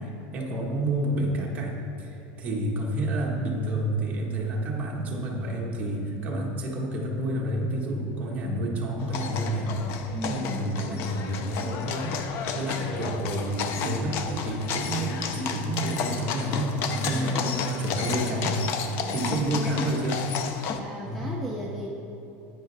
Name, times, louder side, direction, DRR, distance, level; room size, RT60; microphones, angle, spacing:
voice 1, 0.0-12.2 12.5-18.6 19.1-20.3 21.0-21.3, right 1 dB, 25° right, -2 dB, 1.3 m, -29 dB
sound 1, 9.0-20.8, left 6 dB, 45° left, 0.6 m, -32 dB
voice 2, 10.1-10.7 16.9-17.5 19.0-19.9 20.7-21.9, right 1 dB, ahead, -3 dB, 0.6 m, -37 dB
10.0 x 9.1 x 3.4 m, 2.9 s
supercardioid pair, 165°, 6 cm